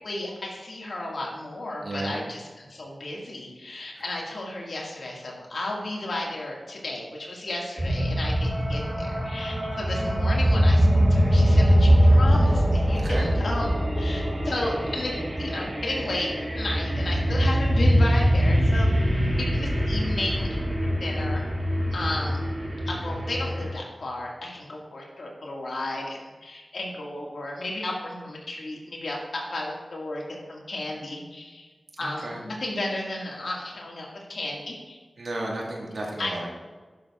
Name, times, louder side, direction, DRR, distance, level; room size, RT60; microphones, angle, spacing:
voice 1, 0.0-15.1 15.4-18.9 19.3-20.5 20.8-21.5 21.9-22.4 22.9-31.7 32.0-35.0 36.2-36.5, left 1 dB, 80° left, -2 dB, 1.8 m, -33 dB
voice 2, 1.8-2.2 3.9-4.0 12.9-13.3 32.0-32.4 35.2-36.5, right 1 dB, 90° right, -2 dB, 1.7 m, -33 dB
sound 1, 7.8-23.7, equal, 40° right, 2.3 m, -22 dB
11.0 x 6.4 x 2.4 m, 1.4 s
wide cardioid pair, 55°, 0 cm